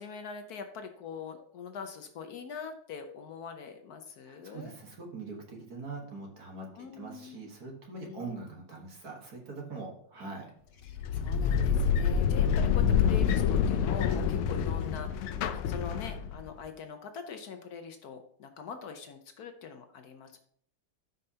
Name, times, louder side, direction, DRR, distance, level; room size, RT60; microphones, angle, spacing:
voice 1, 0.0-4.7 6.7-7.5 8.0-8.4 10.8-20.4, left 6 dB, 70° left, 6 dB, 0.9 m, -43 dB
voice 2, 4.3-6.7 7.0-10.5, right 3 dB, 50° right, 0 dB, 1.7 m, -42 dB
sound 1, 10.9-16.5, left 7 dB, 85° left, 1.5 m, -27 dB
13.0 x 5.4 x 2.8 m, 0.63 s
omnidirectional pair, 2.4 m